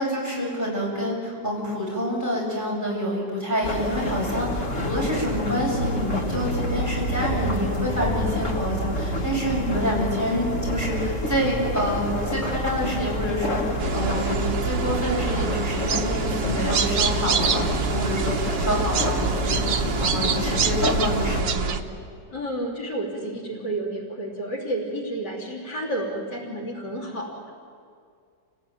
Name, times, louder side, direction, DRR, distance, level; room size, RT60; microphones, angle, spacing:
voice 1, 0.0-19.7 20.0-21.8, equal, 10° right, -5 dB, 7.7 m, -27 dB
sound 1, 3.6-21.4, left 1 dB, 45° left, 2.1 m, -28 dB
sound 2, 13.8-21.8, right 5 dB, 60° right, 1.6 m, -26 dB
voice 2, 22.3-27.5, right 1 dB, 70° left, 0 dB, 3.9 m, -31 dB
29.5 x 18.0 x 9.3 m, 2.2 s
omnidirectional pair, 1.9 m